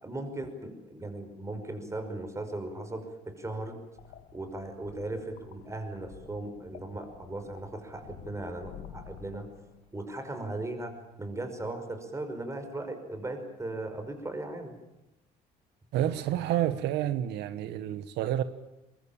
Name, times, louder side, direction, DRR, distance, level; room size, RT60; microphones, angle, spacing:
voice 1, 0.0-3.8 4.3-9.5 9.9-10.9 11.2-14.7, right 2 dB, 15° right, 7 dB, 5.6 m, -37 dB
sound 1, 4.0-10.1, left 10 dB, 85° left, 2.6 m, -51 dB
voice 2, 15.9-18.4, right 12 dB, 85° right, 12 dB, 1.3 m, -29 dB
23.0 x 22.5 x 8.9 m, 0.96 s
cardioid pair, 110°, 17 cm